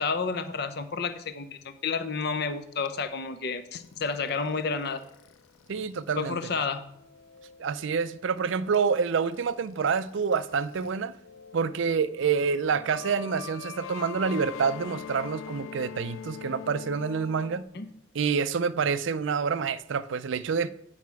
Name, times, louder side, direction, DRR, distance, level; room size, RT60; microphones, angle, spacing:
voice 1, 0.0-5.0 6.2-6.8 17.7-17.9, left 5 dB, 50° left, 0.7 m, -30 dB
sound 1, 3.7-10.9 11.2-17.6, left 8 dB, 80° left, 0.4 m, -44 dB
voice 2, 5.7-6.4 7.6-11.1 11.5-17.6 18.1-20.7, right 5 dB, 65° right, 0.4 m, -27 dB
9.4 x 5.6 x 4.7 m
head